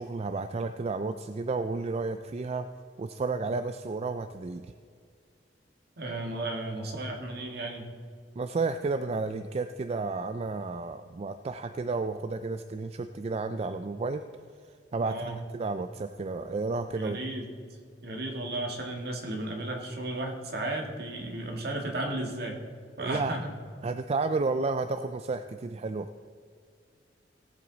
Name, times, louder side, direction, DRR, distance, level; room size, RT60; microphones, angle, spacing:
voice 1, 0.0-2.7 3.0-4.7 8.4-14.2 14.9-17.2 23.0-23.3 23.8-26.1, right 3 dB, 35° right, 9 dB, 0.3 m, -32 dB
voice 2, 6.0-7.9 15.0-15.4 16.9-17.5 18.0-22.6 23.0-23.5, right 2 dB, 60° right, 1 dB, 1.9 m, -34 dB
17.5 x 8.0 x 4.0 m, 2.1 s
head